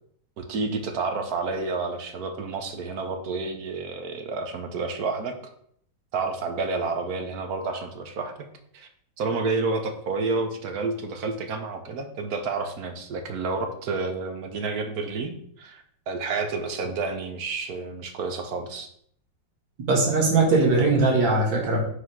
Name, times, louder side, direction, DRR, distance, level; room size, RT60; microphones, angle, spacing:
voice 1, 0.4-5.4 6.1-8.5 8.7-8.9 9.2-18.9, right 3 dB, 60° right, 6 dB, 1.2 m, -30 dB
voice 2, 19.9-21.8, right 3 dB, 85° right, -2 dB, 2.5 m, -20 dB
5.1 x 4.1 x 5.5 m, 0.66 s
omnidirectional pair, 2.0 m